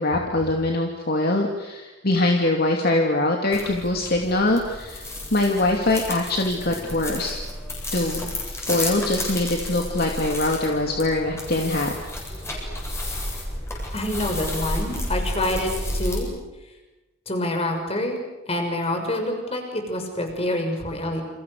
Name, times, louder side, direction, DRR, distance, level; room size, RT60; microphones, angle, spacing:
voice 1, 0.0-7.3 7.9-11.9, left 2 dB, 50° left, 1 dB, 2.9 m, -23 dB
brushing brushes against stuff at ace hardware, 3.5-16.2, left 1 dB, 15° left, 7.9 m, -31 dB
voice 2, 13.9-16.4 17.3-18.2 18.5-21.2, left 1 dB, 30° left, 4 dB, 6.4 m, -27 dB
30.0 x 28.0 x 6.7 m, 1.1 s
head